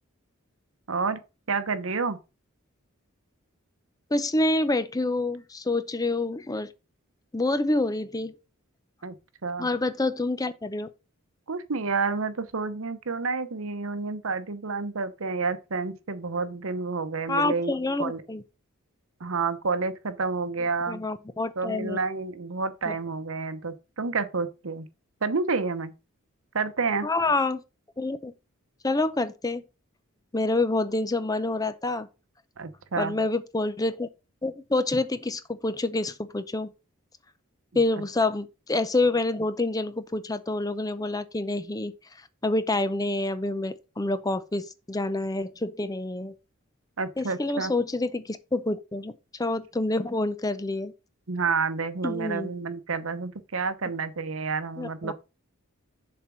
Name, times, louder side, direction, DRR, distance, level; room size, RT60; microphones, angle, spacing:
voice 1, 0.9-1.2 1.5-2.2 9.0-9.2 9.4-9.7 11.5-17.7 18.0-18.2 19.2-21.0 21.6-24.9 25.2-25.9 26.5-27.1 32.6-33.2 47.0-47.7 51.3-55.1, right 4 dB, 70° right, 0.9 m, -29 dB
voice 2, 4.1-6.7 7.3-8.3 9.6-10.9 17.3-18.4 20.9-22.0 27.0-27.6 28.0-28.3 28.8-29.6 30.3-32.1 33.0-34.1 34.4-36.7 37.7-41.9 42.4-46.3 47.2-49.1 49.4-50.9 52.0-52.5 54.8-55.1, left 2 dB, 15° left, 0.6 m, -27 dB
7.1 x 4.4 x 6.1 m
head